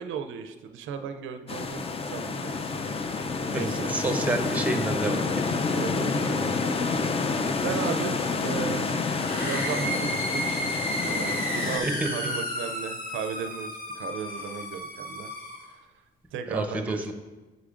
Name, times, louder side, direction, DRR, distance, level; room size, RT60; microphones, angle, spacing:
voice 1, 0.0-2.7 3.0-4.0 5.6-6.5 7.6-10.7 11.0-13.7 13.9-15.3 15.7-15.9 16.3-17.1, right 7 dB, 80° right, 8 dB, 0.4 m, -36 dB
sound 1, 1.5-11.8, left 4 dB, 30° left, 0.4 m, -28 dB
voice 2, 3.5-5.5 11.8-12.1 16.5-17.1, right 1 dB, 5° right, 5 dB, 0.7 m, -29 dB
sound 2, 9.1-15.7, equal, 45° left, 1.2 m, -33 dB
7.9 x 4.8 x 2.5 m, 1.2 s
cardioid pair, 90°, 20 cm